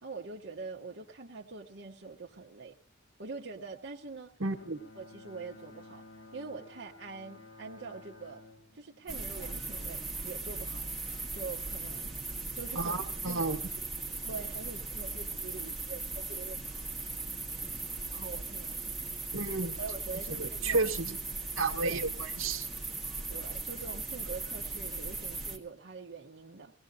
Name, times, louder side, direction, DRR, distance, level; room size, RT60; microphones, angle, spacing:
voice 1, 0.0-2.8 3.2-4.3 5.0-6.0 6.3-8.4 8.7-10.9 11.3-12.1 12.5-12.9 13.3-13.5 13.8-13.9 14.2-16.6 18.1-18.8 19.8-20.9 21.8-22.0 23.3-26.7, right 4 dB, 60° right, 1.1 m, -44 dB
voice 2, 4.4-4.8 12.7-13.7 19.3-19.7 20.3-21.2 21.6-22.7, right 3 dB, 85° right, 1.4 m, -32 dB
Bowed string instrument, 4.5-10.0, left 2 dB, 80° left, 2.0 m, -54 dB
sound 1, 9.1-25.6, right 3 dB, ahead, 1.6 m, -38 dB
23.0 x 17.5 x 2.7 m
head